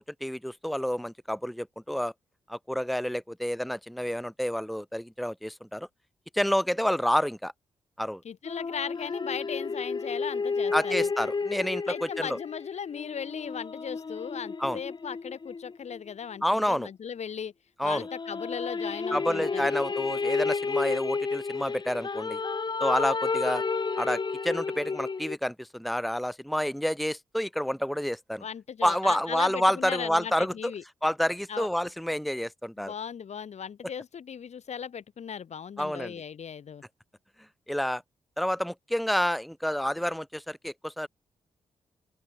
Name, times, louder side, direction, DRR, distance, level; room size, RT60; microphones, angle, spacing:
voice 1, 0.0-2.1 2.5-5.9 6.3-7.5 8.0-8.2 10.7-12.4 14.6-14.8 16.4-16.9 17.8-18.1 19.1-22.4 22.8-23.6 24.0-28.4 28.8-30.7 31.0-32.9 35.8-36.1 37.7-38.0 38.4-41.1, equal, ahead, 1.1 m, -29 dB
voice 2, 8.2-11.1 11.9-17.5 17.8-19.7 28.4-30.8 31.5-31.7 32.8-36.8, left 7 dB, 65° left, 2.6 m, -37 dB
sound 1, 8.4-16.1 17.9-25.4, left 4 dB, 35° left, 1.2 m, -31 dB
open air
cardioid pair, 55°, 12 cm